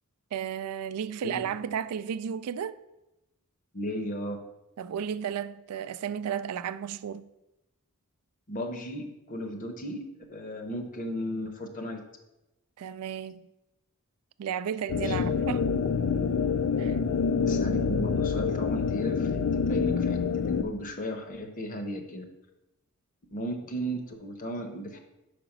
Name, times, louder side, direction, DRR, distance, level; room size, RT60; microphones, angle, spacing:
voice 1, 0.3-2.7 4.8-7.3 12.8-13.5 14.4-15.7 16.8-17.0, right 8 dB, 85° right, 0.3 m, -33 dB
voice 2, 3.7-4.4 8.5-10.0 10.3-12.0 14.9-15.3 17.4-22.2 23.3-25.0, equal, 35° left, 0.8 m, -35 dB
sound 1, 14.9-20.6, left 5 dB, 65° left, 0.3 m, -27 dB
5.1 x 4.9 x 5.9 m
head